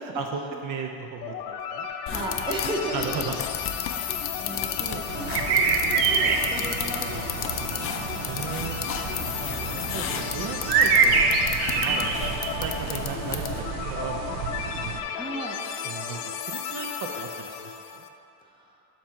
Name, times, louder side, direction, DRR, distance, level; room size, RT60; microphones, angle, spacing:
voice 1, 0.1-1.9 2.9-3.4 4.8-5.1 8.3-8.8 9.4-11.3 11.7-15.0 15.8-18.0, right 5 dB, 50° right, 3 dB, 0.6 m, -36 dB
sound 1, 1.2-18.1, left 7 dB, 85° left, 0.6 m, -34 dB
sound 2, 2.1-13.7, left 8 dB, 30° left, 0.4 m, -35 dB
voice 2, 2.1-3.2 3.9-7.9 11.8-12.1 15.2-15.6 18.4-18.8, right 2 dB, 10° right, 0 dB, 0.7 m, -36 dB
sound 3, 5.1-15.0, right 5 dB, 90° right, 0.7 m, -26 dB
7.3 x 3.0 x 5.8 m, 2.6 s
supercardioid pair, 100°, 44 cm